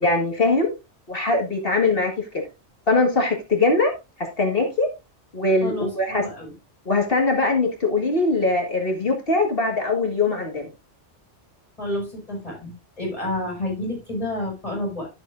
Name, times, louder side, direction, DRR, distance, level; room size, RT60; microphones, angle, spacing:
voice 1, 0.0-0.7 1.1-2.3 2.9-3.9 4.4-4.9 5.3-6.2 6.9-10.7, left 3 dB, 55° left, 1 dB, 1.9 m, -21 dB
voice 2, 5.6-6.5 11.8-15.1, left 1 dB, 30° left, -2 dB, 6.2 m, -30 dB
12.0 x 7.7 x 2.5 m, 0.26 s
omnidirectional pair, 1.2 m